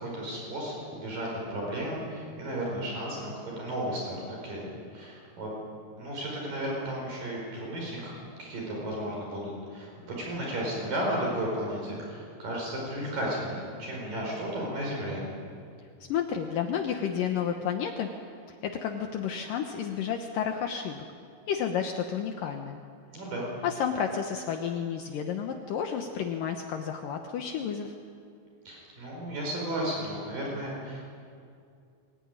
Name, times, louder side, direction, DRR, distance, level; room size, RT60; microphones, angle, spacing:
voice 1, 0.0-5.5 5.9-8.1 8.4-15.2 23.1-23.5 28.6-31.0, right 1 dB, 60° right, -2 dB, 6.7 m, -34 dB
voice 2, 16.1-18.1 18.6-21.0 21.5-22.8 23.6-28.0, left 8 dB, 70° left, 4 dB, 2.5 m, -31 dB
23.5 x 19.5 x 9.7 m, 2.4 s
omnidirectional pair, 4.4 m